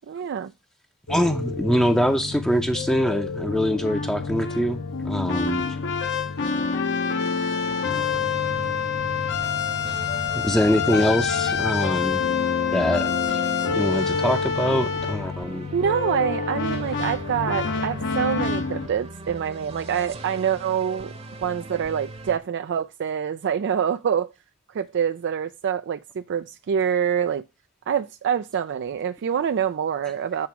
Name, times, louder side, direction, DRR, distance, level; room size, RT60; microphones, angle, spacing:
voice 1, 0.1-0.5 15.7-21.1 21.4-24.3 24.7-27.4 27.9-30.5, right 8 dB, 55° right, 0.4 m, -26 dB
sound 1, 1.1-18.9, left 6 dB, 55° left, 0.9 m, -27 dB
voice 2, 1.1-5.6 10.3-12.2 12.7-13.1 13.8-15.7, equal, 5° left, 0.6 m, -23 dB
sound 2, 7.5-22.4, right 1 dB, 30° right, 0.9 m, -40 dB
8.6 x 3.6 x 5.8 m
head